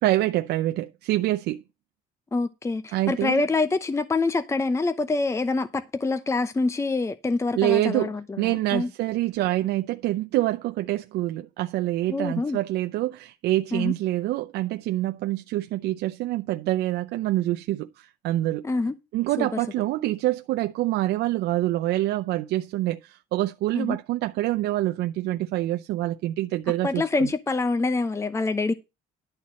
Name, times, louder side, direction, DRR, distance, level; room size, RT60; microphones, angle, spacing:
voice 1, 0.0-1.6 2.9-3.4 7.6-18.7 19.1-27.3, right 15 dB, 80° right, 0.6 m, -26 dB
voice 2, 2.3-8.9 12.1-12.6 13.7-13.9 18.6-18.9 19.4-19.5 23.7-24.0 26.8-28.7, left 3 dB, 15° left, 0.8 m, -26 dB
11.0 x 4.2 x 7.5 m
cardioid pair, 110°, 17 cm